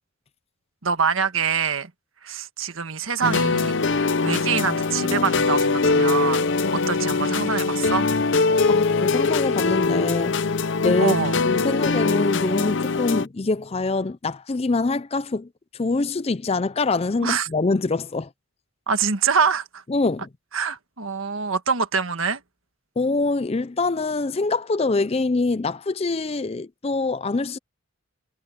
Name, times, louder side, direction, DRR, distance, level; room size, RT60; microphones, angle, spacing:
voice 1, 0.8-1.9 2.2-3.8 4.2-6.5 6.7-8.1 11.0-11.4 17.2-17.5 18.9-19.8 20.5-22.4, right 6 dB, 70° right, 1.5 m, -25 dB
sound 1, 3.2-13.3, left 4 dB, 55° left, 0.7 m, -22 dB
voice 2, 8.7-10.5 10.8-11.2 11.5-15.5 15.8-18.3 19.9-20.3 23.0-27.6, left 3 dB, 30° left, 0.5 m, -24 dB
head